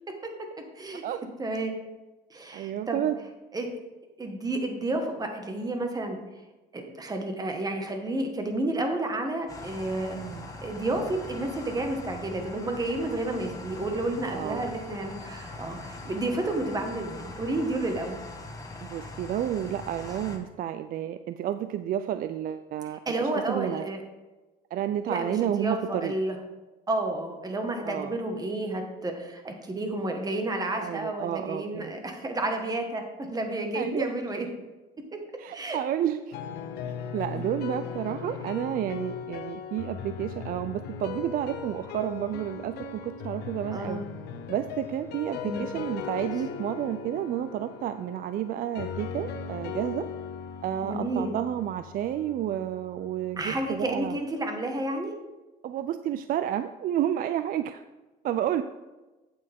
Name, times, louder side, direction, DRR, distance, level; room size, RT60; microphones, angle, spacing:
voice 1, 1.4-1.7 2.3-3.1 3.5-3.7 4.2-6.2 6.7-10.2 10.6-18.2 23.0-24.0 25.1-26.4 26.9-33.0 33.3-34.5 35.5-35.8 37.4-37.5 43.7-44.0 45.4-45.6 50.8-51.3 53.4-55.1, right 2 dB, 20° right, 4 dB, 1.5 m, -31 dB
voice 2, 2.5-3.2 10.1-10.4 14.3-14.7 18.8-23.9 24.7-26.1 27.8-28.1 30.8-31.9 33.7-34.1 35.4-36.3 36.9-44.0 44.5-50.1 50.6-54.2 55.6-57.8 58.2-58.6, right 11 dB, 60° right, 11 dB, 0.4 m, -31 dB
sound 1, 9.5-20.4, left 2 dB, 20° left, 1.5 m, -42 dB
sound 2, 36.3-54.2, left 7 dB, 80° left, 0.8 m, -38 dB
8.8 x 8.3 x 3.6 m, 1.1 s
cardioid pair, 110°, 17 cm